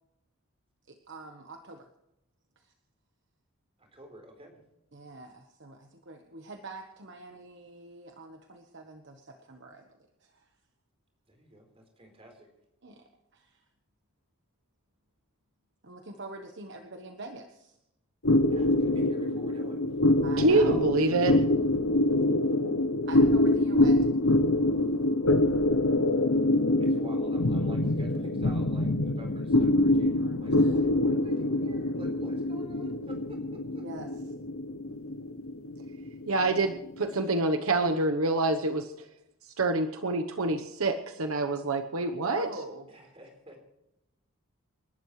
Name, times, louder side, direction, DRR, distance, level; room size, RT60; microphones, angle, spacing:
voice 1, 0.9-1.8 2.6-2.7 4.9-9.9 10.2-10.5 12.8-13.6 15.8-17.8 20.2-20.9 23.1-24.1 30.5-30.8 33.7-34.3 42.3-42.9, right 2 dB, 55° right, 4 dB, 1.2 m, -45 dB
voice 2, 3.8-4.6 11.3-12.5 18.5-19.8 26.8-33.8 42.9-43.6, right 1 dB, 25° right, 3 dB, 4.3 m, -49 dB
sound 1, 18.2-37.0, left 1 dB, 70° left, 0.9 m, -25 dB
voice 3, 20.4-21.4 36.3-38.9 39.6-42.5, right 2 dB, 75° right, 6 dB, 1.0 m, -26 dB
28.5 x 12.0 x 3.2 m, 0.89 s
head